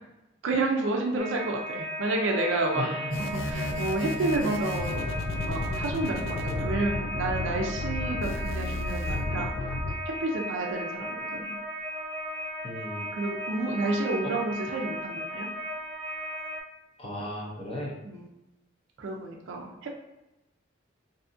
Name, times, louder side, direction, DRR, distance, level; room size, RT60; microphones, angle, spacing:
voice 1, 0.4-2.9 3.5-5.0 5.4-9.6 10.2-11.6 13.1-15.5 18.1-18.3 19.0-19.9, right 2 dB, 70° right, 0 dB, 0.4 m, -30 dB
sound 1, 1.2-16.6, equal, 35° right, 0.7 m, -36 dB
voice 2, 2.7-3.2 12.6-13.1 14.2-14.3 17.0-17.9, left 1 dB, 30° left, -5 dB, 0.6 m, -35 dB
sound 2, 3.1-9.9, left 2 dB, 85° left, 0.4 m, -32 dB
2.6 x 2.4 x 2.5 m, 0.95 s
head